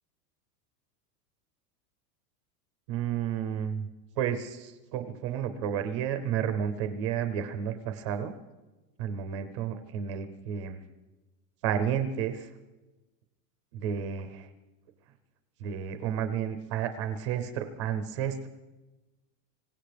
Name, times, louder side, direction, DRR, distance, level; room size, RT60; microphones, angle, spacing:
voice 1, 2.9-3.9 4.2-8.3 9.0-10.8 11.6-12.5 13.7-14.5 15.6-18.5, right 8 dB, 20° right, 9 dB, 0.4 m, -31 dB
25.5 x 16.5 x 3.4 m, 1.1 s
supercardioid pair, 170°, 49 cm